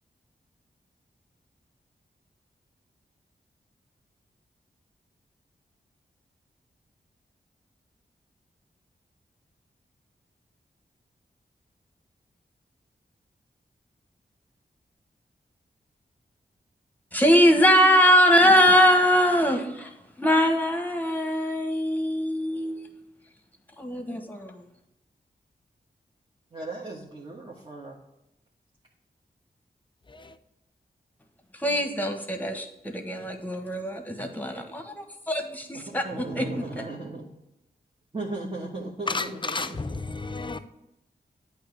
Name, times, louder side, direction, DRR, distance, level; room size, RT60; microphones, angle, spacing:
voice 1, 17.1-19.9 20.2-22.9 23.8-24.6 31.6-36.8, equal, 10° left, 1.2 m, -22 dB
voice 2, 26.5-28.0 35.7-37.3 38.1-39.8, right 2 dB, 30° right, 1.3 m, -37 dB
voice 3, 39.1-40.6, left 3 dB, 30° left, 0.6 m, -32 dB
8.6 x 2.9 x 6.1 m
cardioid pair, 50°, 17 cm